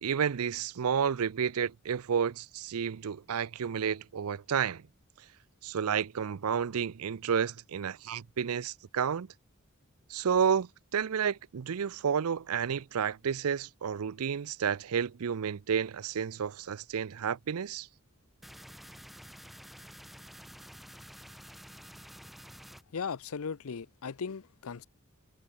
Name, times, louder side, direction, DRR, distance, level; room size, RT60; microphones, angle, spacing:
voice 1, 0.0-4.8 5.6-9.3 10.1-17.9, right 7 dB, 85° right, 0.5 m, -31 dB
sound 1, 18.4-22.8, equal, ahead, 0.5 m, -50 dB
voice 2, 22.9-24.8, left 5 dB, 75° left, 0.6 m, -37 dB
head